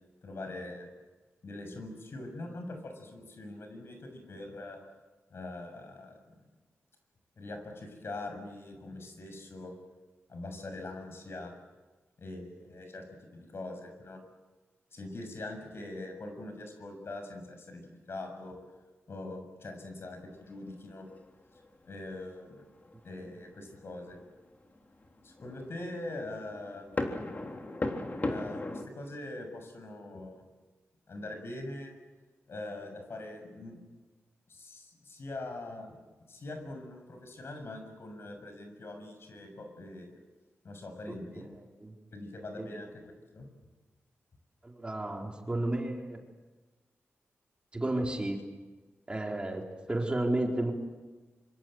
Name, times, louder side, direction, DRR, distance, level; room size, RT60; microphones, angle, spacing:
voice 1, 0.2-0.9 1.4-4.8 5.3-6.2 7.4-9.7 10.3-11.5 12.2-14.2 14.9-18.6 19.1-21.1 21.9-22.6 23.0-24.2 25.2-26.9 28.2-30.4 31.1-31.9 32.5-33.8 34.5-36.0 36.3-40.2 40.6-41.5 42.1-43.0 43.3-43.5, left 2 dB, 60° left, 6 dB, 7.0 m, -43 dB
sound 1, 20.4-21.3 21.6-21.7 22.4-23.0 23.4-28.9, left 2 dB, 35° left, 3.4 m, -37 dB
voice 2, 44.6-46.2 47.7-48.4 49.1-49.6 49.9-50.7, right 1 dB, 20° right, 1 dB, 4.3 m, -32 dB
26.0 x 25.5 x 8.0 m, 1.3 s
cardioid pair, 85°, 5 cm